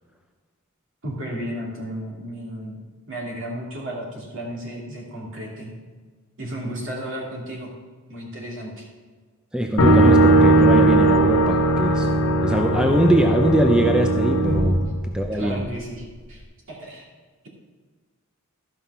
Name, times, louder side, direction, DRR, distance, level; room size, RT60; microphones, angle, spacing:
voice 1, 1.0-5.7 6.4-7.7 8.1-8.9 14.8-14.9 15.3-16.4 16.7-17.1, right 1 dB, 60° right, -2 dB, 2.8 m, -33 dB
voice 2, 9.5-12.1 12.4-14.8 15.1-15.6, right 1 dB, 5° right, 3 dB, 0.5 m, -22 dB
sound 1, 9.8-15.7, right 1 dB, 65° left, 0.9 m, -18 dB
13.0 x 5.6 x 5.6 m, 1.5 s
head